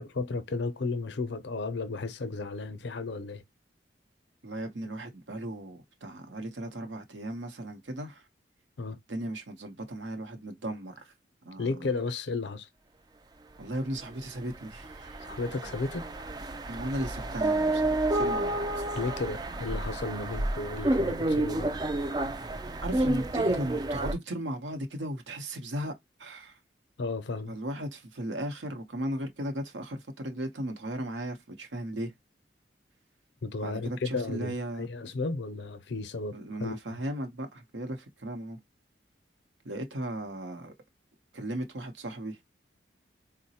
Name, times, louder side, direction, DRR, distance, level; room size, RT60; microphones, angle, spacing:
voice 1, 0.0-3.4 8.8-9.0 11.6-12.7 15.2-16.0 18.9-21.7 27.0-27.6 33.4-37.0, left 3 dB, 70° left, 0.5 m, -34 dB
voice 2, 4.4-8.2 9.1-11.1 11.4-11.9 13.6-15.2 16.7-18.6 22.8-25.9 26.2-26.6 27.5-32.1 33.6-34.9 36.3-38.6 39.6-40.7 41.3-42.4, right 1 dB, 80° right, 0.7 m, -36 dB
sound 1, 14.0-14.1 14.4-24.1, right 2 dB, 20° right, 0.3 m, -30 dB
3.9 x 2.1 x 2.7 m
head